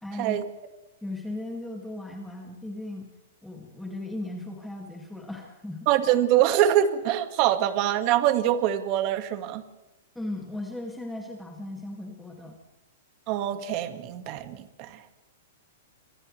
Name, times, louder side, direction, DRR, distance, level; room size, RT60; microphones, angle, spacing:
voice 1, 0.0-0.4 1.0-3.1 3.4-5.9 10.2-12.6, left 1 dB, 5° left, -1 dB, 2.3 m, -37 dB
voice 2, 5.9-9.6 13.3-15.0, right 11 dB, 35° right, 8 dB, 1.8 m, -24 dB
30.0 x 27.0 x 3.3 m, 0.99 s
hypercardioid pair, 165°, 0 cm